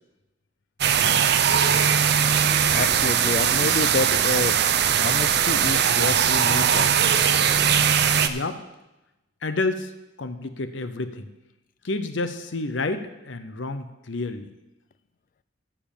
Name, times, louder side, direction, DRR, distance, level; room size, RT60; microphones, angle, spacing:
sound 1, 0.8-8.3, right 8 dB, 60° right, 0.6 m, -20 dB
voice 1, 2.7-4.6 5.0-7.2, left 3 dB, 45° left, 15 dB, 0.4 m, -28 dB
voice 2, 8.3-8.6 9.4-9.9 10.2-11.3 11.8-14.5, left 3 dB, 70° left, 10 dB, 0.8 m, -29 dB
14.0 x 4.8 x 7.1 m, 0.96 s
head